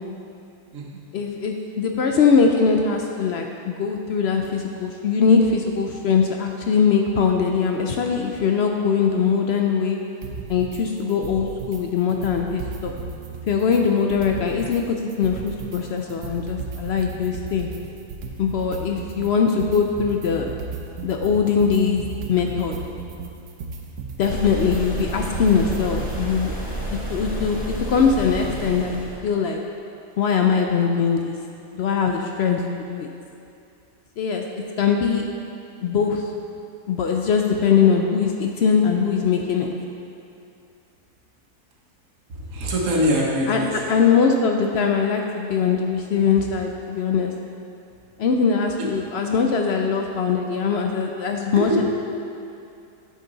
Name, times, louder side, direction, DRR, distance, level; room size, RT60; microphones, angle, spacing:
voice 1, 1.1-10.0 10.5-12.9 13.5-17.7 18.4-20.5 21.0-22.8 24.2-26.5 27.1-29.6 30.2-31.4 31.7-32.6 32.9-33.1 34.2-35.2 35.8-36.3 36.9-39.7 43.5-43.6 43.9-47.3 48.2-51.8, left 6 dB, 85° left, 3 dB, 0.5 m, -21 dB
sound 1, 10.2-10.8 11.1-11.8 12.1-14.8 15.1-26.2, right 4 dB, 85° right, 1.3 m, -35 dB
sound 2, 24.2-29.2, right 1 dB, 5° right, 1.0 m, -30 dB
voice 2, 42.3-43.9 48.8-48.9 51.6-51.8, equal, 60° right, -3 dB, 1.5 m, -23 dB
8.8 x 6.5 x 4.0 m, 2.6 s
omnidirectional pair, 1.6 m